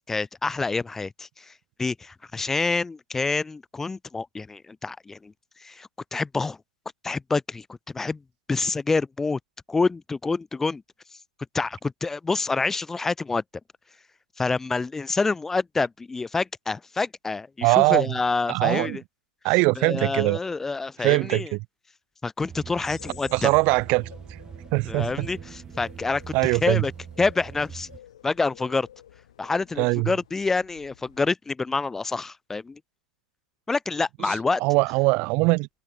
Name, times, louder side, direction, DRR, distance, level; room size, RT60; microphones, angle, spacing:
voice 1, 0.1-1.5 1.8-5.3 5.6-6.6 7.0-8.2 8.5-9.4 9.7-10.8 11.5-13.4 14.4-19.0 19.8-21.5 22.2-23.5 24.9-26.9 27.2-27.9 28.2-28.9 29.4-32.8 33.7-34.6, left 3 dB, 10° left, 0.7 m, -27 dB
voice 2, 17.6-18.1 18.5-19.0 19.4-20.4 21.0-21.6 23.3-24.1 24.7-25.3 26.3-26.9 29.8-30.1 34.2-34.4 34.6-35.7, right 27 dB, 35° right, 0.4 m, -22 dB
sound 1, 22.4-28.0, right 7 dB, 20° right, 1.1 m, -42 dB
sound 2, 22.8-31.3, left 11 dB, 60° left, 4.0 m, -51 dB
figure-of-eight pair, 105°, 4 cm